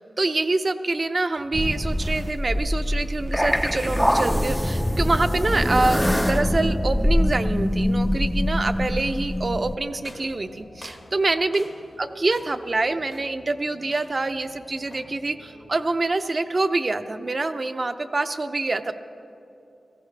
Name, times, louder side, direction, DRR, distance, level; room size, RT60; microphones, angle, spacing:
voice 1, 0.0-11.6 12.0-18.9, right 2 dB, 45° right, 10 dB, 0.6 m, -26 dB
sound 1, 1.4-15.7, left 1 dB, 85° left, 2.6 m, -50 dB
sound 2, 1.5-9.8, equal, ahead, 0.4 m, -23 dB
sound 3, 10.0-12.0 12.3-12.7 13.1-13.5 13.9-14.3 14.9-15.2, left 2 dB, 45° left, 1.0 m, -48 dB
16.5 x 14.5 x 3.3 m, 2.7 s
cardioid pair, 55°, 0 cm